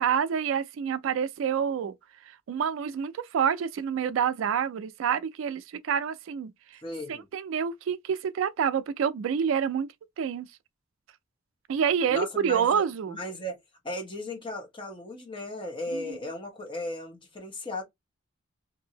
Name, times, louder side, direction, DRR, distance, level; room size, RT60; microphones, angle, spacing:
voice 1, 0.0-1.9 2.2-6.8 7.1-9.9 10.2-10.5 11.7-13.2 15.9-16.2, right 7 dB, 80° right, 0.3 m, -28 dB
voice 2, 6.8-7.3 12.1-13.6 13.8-17.8, left 1 dB, 25° left, 1.0 m, -36 dB
2.7 x 2.6 x 2.7 m
head